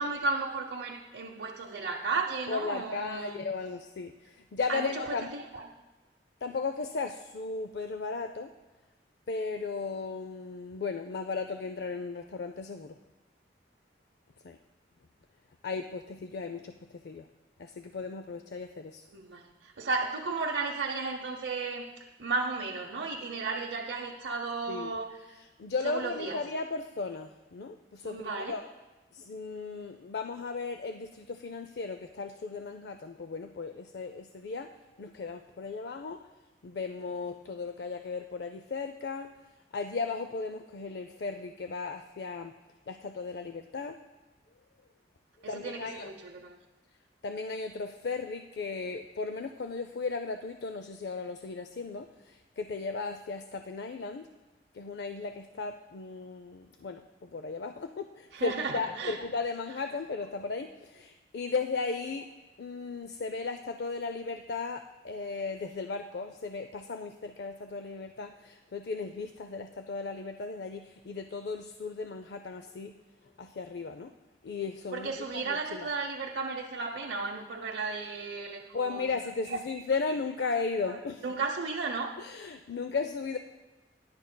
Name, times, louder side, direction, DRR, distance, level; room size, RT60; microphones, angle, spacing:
voice 1, 0.0-3.4 4.7-5.6 19.1-21.9 22.2-25.1 25.8-26.4 28.0-28.6 45.4-46.6 58.3-59.2 74.9-79.1 79.5-79.6 80.9-81.0 81.2-82.1, right 4 dB, 90° right, 0 dB, 0.7 m, -34 dB
voice 2, 2.5-5.3 6.4-8.5 9.3-12.9 14.4-14.6 15.6-16.7 17.0-17.3 17.6-19.0 24.7-24.9 25.4-28.7 29.1-34.7 35.0-36.2 36.6-39.3 39.7-42.6 42.9-44.0 45.5-46.1 47.2-54.3 54.7-62.3 62.6-72.9 73.4-74.1 74.4-75.9 78.7-81.4 82.2-83.4, left 4 dB, 70° left, 7 dB, 0.4 m, -36 dB
18.5 x 10.5 x 2.2 m, 1.1 s
head